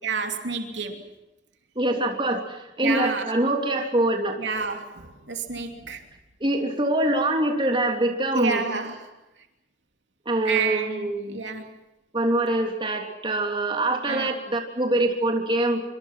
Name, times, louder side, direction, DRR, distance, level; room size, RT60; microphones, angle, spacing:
voice 1, 0.0-1.1 2.8-3.3 4.4-6.0 8.3-9.1 10.4-11.7 14.0-14.3, right 5 dB, 90° right, 2.9 m, -29 dB
voice 2, 1.7-4.4 6.4-8.6 10.2-11.4 12.1-15.8, right 1 dB, 30° right, 3.4 m, -24 dB
25.5 x 25.0 x 6.0 m
head